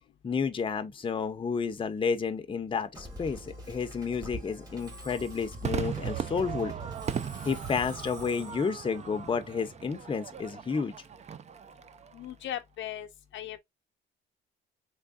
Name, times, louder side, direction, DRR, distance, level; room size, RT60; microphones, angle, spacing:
voice 1, 0.2-6.8 7.4-10.9, left 5 dB, 25° left, 0.6 m, -31 dB
Musical instrument, 2.9-10.3, equal, 20° right, 1.3 m, -46 dB
Crowd / Fireworks, 5.6-12.2, right 8 dB, 35° right, 0.4 m, -37 dB
voice 2, 12.1-13.6, left 11 dB, 70° left, 0.5 m, -38 dB
3.5 x 3.4 x 2.4 m
cardioid pair, 90°, 20 cm